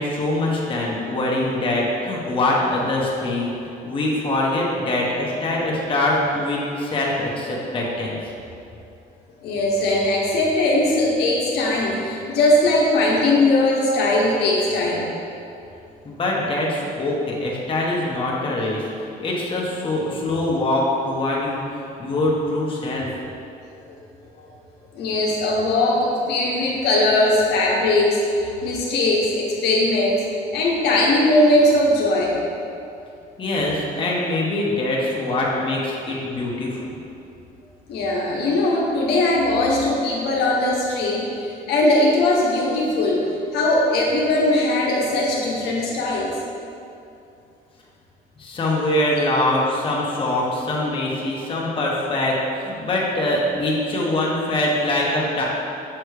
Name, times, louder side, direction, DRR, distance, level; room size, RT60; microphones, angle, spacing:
voice 1, 0.0-3.5 3.8-8.2 16.0-18.8 19.2-21.6 22.0-23.1 33.4-37.0 48.4-55.4, left 1 dB, 30° left, -4 dB, 1.1 m, -23 dB
voice 2, 9.4-15.1 23.9-24.0 24.4-24.5 24.9-30.2 30.5-32.4 36.3-36.4 37.9-43.3 43.5-46.3, left 1 dB, 80° left, -2 dB, 0.9 m, -20 dB
6.7 x 3.1 x 4.8 m, 2.6 s
cardioid pair, 110°, 17 cm